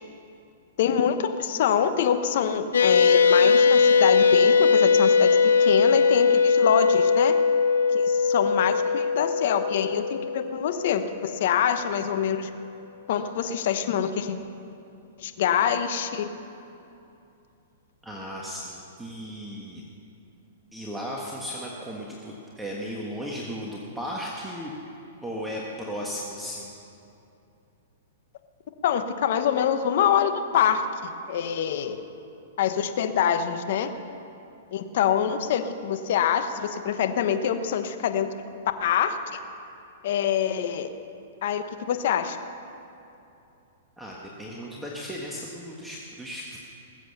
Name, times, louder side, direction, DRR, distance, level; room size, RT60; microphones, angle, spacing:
voice 1, 0.8-7.4 7.9-12.5 13.1-14.4 15.2-16.2 28.8-32.0 32.6-33.9 34.7-38.3 38.8-39.4 40.0-40.9 41.4-42.4, left 8 dB, 60° left, 9 dB, 1.1 m, -25 dB
sound 1, 2.7-11.4, left 5 dB, 85° left, 0.5 m, -20 dB
voice 2, 18.0-19.8 20.7-24.7 25.2-26.7 44.0-46.6, equal, 5° right, -4 dB, 1.5 m, -36 dB
20.5 x 7.9 x 6.8 m, 2.8 s
hypercardioid pair, 135°, 0 cm